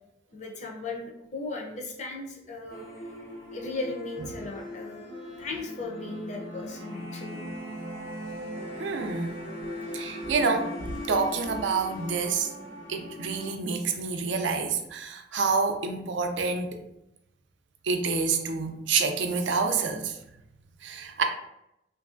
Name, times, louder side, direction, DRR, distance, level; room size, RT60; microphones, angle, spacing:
voice 1, 0.3-2.8 3.5-5.0 5.4-7.4, left 3 dB, 40° left, 0 dB, 0.5 m, -37 dB
sound 1, 2.7-13.5, left 1 dB, 80° left, 0.9 m, -39 dB
voice 2, 8.8-9.4 9.9-10.7 11.1-12.5 12.9-16.8 17.8-20.2 20.8-21.2, right 4 dB, 90° right, 6 dB, 0.4 m, -28 dB
3.1 x 2.6 x 2.4 m, 0.84 s
head